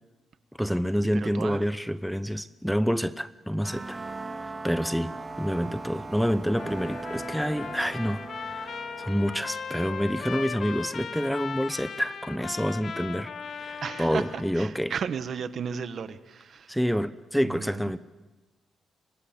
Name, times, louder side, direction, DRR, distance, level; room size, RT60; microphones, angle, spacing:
voice 1, 0.6-4.0 4.4-14.9 16.7-18.0, equal, ahead, 14 dB, 0.8 m, -28 dB
voice 2, 1.1-1.7 13.8-16.7 17.4-17.9, right 6 dB, 55° right, 12 dB, 1.5 m, -34 dB
sound 1, 3.6-12.3, right 3 dB, 25° right, 3.2 m, -41 dB
Trumpet, 6.5-14.6, left 6 dB, 55° left, 1.3 m, -38 dB
29.5 x 25.5 x 7.6 m, 1.1 s
cardioid pair, 110°, 0 cm